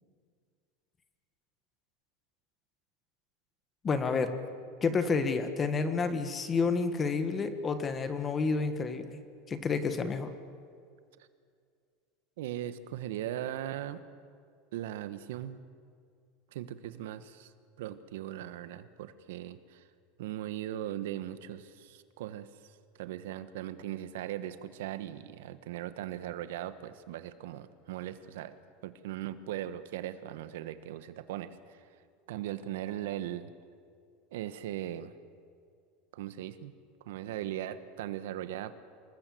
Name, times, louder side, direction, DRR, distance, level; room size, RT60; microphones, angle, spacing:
voice 1, 3.8-4.3 4.8-9.2 9.5-10.3, left 4 dB, 20° left, 9 dB, 1.5 m, -29 dB
voice 2, 12.4-14.0 14.7-15.6 16.5-17.5 17.8-19.8 20.2-22.5 22.9-28.6 28.8-31.8 32.3-33.5 34.3-35.1 36.1-36.7 37.0-38.7, right 12 dB, 85° right, 12 dB, 1.4 m, -39 dB
27.5 x 21.0 x 7.8 m, 2.2 s
supercardioid pair, 170°, 0 cm